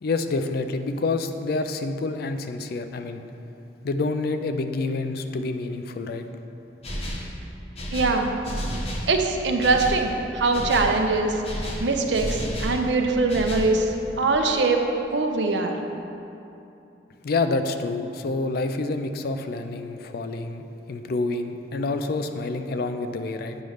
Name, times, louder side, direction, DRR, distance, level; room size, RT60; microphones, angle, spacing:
voice 1, 0.0-3.2 3.8-6.2 17.2-20.6 20.9-23.6, left 3 dB, 55° left, 8 dB, 0.4 m, -28 dB
sound 1, 6.8-7.3 7.7-9.1 9.6-10.0 10.5-11.0 11.4-12.8 13.3-13.7, equal, 35° left, 0.9 m, -31 dB
voice 2, 7.9-8.3 9.1-14.8 15.1-15.8, right 3 dB, 75° right, 4 dB, 0.6 m, -23 dB
8.6 x 3.2 x 6.4 m, 2.8 s
head